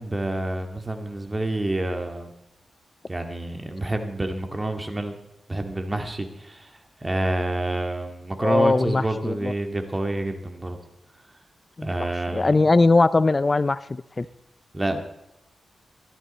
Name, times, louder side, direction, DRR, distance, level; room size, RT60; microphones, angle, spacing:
voice 1, 0.0-2.3 3.1-5.2 5.5-10.8 11.8-12.5 14.7-15.0, right 2 dB, 25° right, 5 dB, 2.2 m, -28 dB
voice 2, 8.4-9.5 11.8-11.9 12.3-14.3, left 3 dB, 35° left, 17 dB, 0.4 m, -20 dB
17.0 x 12.5 x 4.3 m, 0.86 s
cardioid pair, 55°, 0 cm